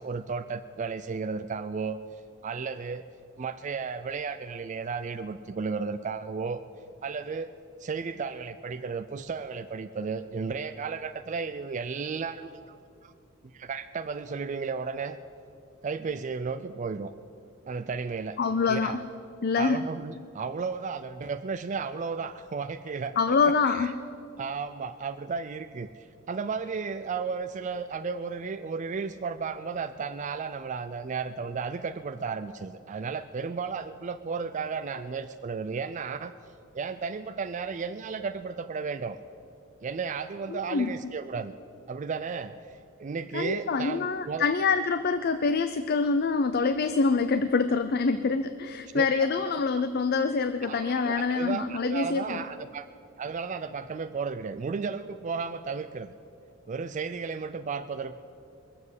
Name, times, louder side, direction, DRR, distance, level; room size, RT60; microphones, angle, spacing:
voice 1, 0.0-2.0 2.4-3.1 3.4-6.6 7.0-7.5 7.8-12.5 13.0-13.1 13.5-15.2 15.8-17.1 17.7-18.4 18.6-19.0 19.5-23.9 24.4-25.9 26.3-36.4 36.7-39.2 39.8-41.5 41.9-44.5 48.9-49.3 50.6-52.9 53.2-56.1 56.7-58.1, right 5 dB, 35° right, 10 dB, 0.4 m, -34 dB
voice 2, 18.4-19.0 19.4-19.8 23.2-23.9 40.5-40.9 43.3-52.4, left 4 dB, 50° left, 10 dB, 0.5 m, -26 dB
22.0 x 7.4 x 8.0 m, 2.5 s
head